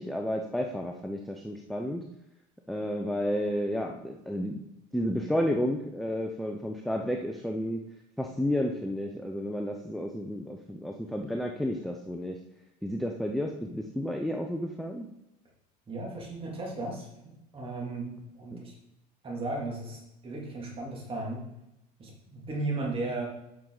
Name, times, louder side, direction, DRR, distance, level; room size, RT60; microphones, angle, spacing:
voice 1, 0.0-2.1 2.7-4.6 4.9-7.8 8.2-12.4 12.8-15.1 18.5-18.6, equal, ahead, 2 dB, 0.5 m, -31 dB
voice 2, 15.9-17.1 17.5-18.7 19.2-21.5 22.0-23.3, right 2 dB, 30° right, -2 dB, 2.6 m, -35 dB
7.7 x 5.9 x 3.9 m, 0.88 s
supercardioid pair, 120°, 20 cm